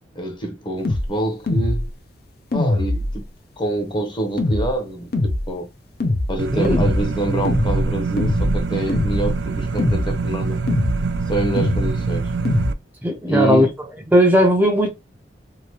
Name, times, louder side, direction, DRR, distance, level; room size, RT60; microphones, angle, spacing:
voice 1, 0.1-1.9 2.5-3.2 3.6-5.7 6.3-10.6 11.3-12.3 13.3-13.7, right 2 dB, 30° left, 0.9 m, -26 dB
sound 1, 0.8-1.1 1.5-1.9 2.5-3.2 4.4-4.7 5.1-5.5 6.0-6.3 6.6-7.0 7.4-7.9 8.2-8.6 8.9-9.3 9.8-10.1 10.7-11.0 11.6-11.9 12.4-12.7, left 2 dB, 60° left, 0.6 m, -21 dB
sound 2, 6.4-12.7, right 4 dB, 85° right, 0.4 m, -25 dB
voice 2, 13.0-13.7 14.1-14.9, equal, 10° right, 0.5 m, -16 dB
2.9 x 2.7 x 3.0 m
head